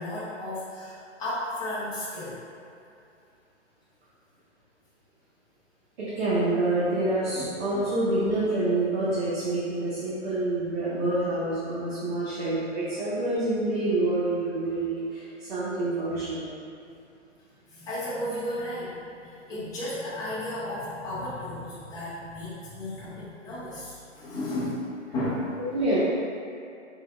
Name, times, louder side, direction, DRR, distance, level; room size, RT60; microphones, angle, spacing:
voice 1, 0.0-2.4 7.3-7.5 7.7-7.9 17.7-24.8 25.1-25.5, left 1 dB, 10° left, -12 dB, 0.8 m, -34 dB
voice 2, 6.0-16.4 25.7-26.0, right 2 dB, 55° right, -10 dB, 1.1 m, -27 dB
4.0 x 3.7 x 2.4 m, 2.6 s
hypercardioid pair, 140°, 36 cm